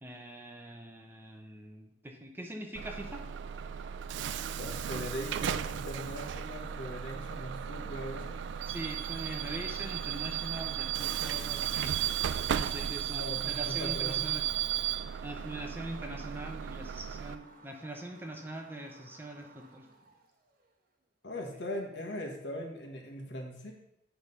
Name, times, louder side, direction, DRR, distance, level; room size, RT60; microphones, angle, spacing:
voice 1, 0.0-3.2 8.7-14.4 14.8-14.9 15.2-19.9, right 1 dB, 10° right, 2 dB, 0.8 m, -43 dB
Bus / Alarm, 2.7-17.3, right 9 dB, 85° right, 0.3 m, -35 dB
sound 1, 2.9-20.9, right 3 dB, 55° right, 1.1 m, -58 dB
voice 2, 4.4-8.3 13.1-14.2 21.2-23.7, left 1 dB, 75° left, 1 dB, 1.4 m, -40 dB
8.9 x 3.5 x 5.4 m, 0.83 s
head